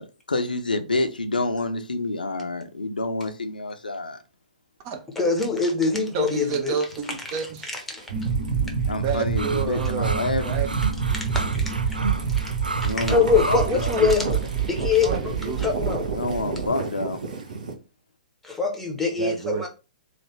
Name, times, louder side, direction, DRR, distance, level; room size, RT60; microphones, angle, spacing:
voice 1, 0.0-4.2 8.9-10.6 12.8-13.9 16.1-17.2, left 2 dB, 80° left, 0.5 m, -28 dB
voice 2, 5.2-6.8 7.9-8.0 11.3-11.4 13.1-14.4 14.7-15.1 15.4-16.0 18.4-19.7, left 5 dB, 5° left, 0.8 m, -23 dB
voice 3, 6.1-7.8 8.9-10.7 13.2-14.3 15.0-15.8 19.2-19.7, right 6 dB, 35° right, 0.6 m, -30 dB
sound 1, 6.9-17.7, right 4 dB, 65° right, 0.8 m, -36 dB
sound 2, 8.1-16.7, right 6 dB, 50° right, 1.9 m, -27 dB
sound 3, 9.4-14.4, right 2 dB, 90° right, 0.3 m, -32 dB
3.2 x 2.5 x 3.1 m
figure-of-eight pair, 115°, 5 cm